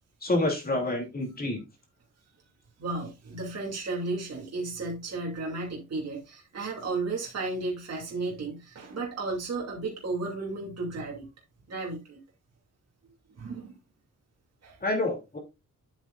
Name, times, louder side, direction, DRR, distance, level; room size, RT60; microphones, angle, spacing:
voice 1, 0.2-1.6 14.8-15.4, left 2 dB, 30° left, 2.9 m, -28 dB
voice 2, 2.8-11.3 11.7-12.2 13.4-13.7 14.6-14.8, right 3 dB, 50° right, 2.7 m, -34 dB
9.4 x 7.7 x 2.5 m
wide cardioid pair, 160°, 32 cm